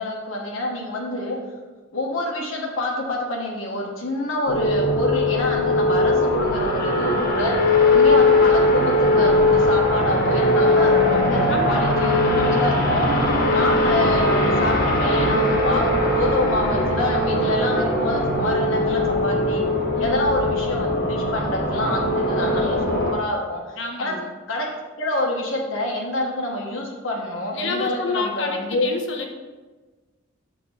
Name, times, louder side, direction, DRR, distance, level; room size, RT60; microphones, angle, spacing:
voice 1, 0.0-1.4 1.9-7.5 7.9-13.1 13.5-19.6 20.0-24.2 24.5-24.7 25.0-28.9, left 1 dB, 85° left, -2 dB, 1.3 m, -27 dB
sound 1, 4.5-23.1, left 1 dB, 50° left, 1.1 m, -20 dB
voice 2, 11.5-11.8 19.9-20.4 23.8-24.3 27.5-29.3, left 3 dB, 65° left, 2 dB, 1.0 m, -29 dB
6.5 x 3.8 x 5.5 m, 1.3 s
head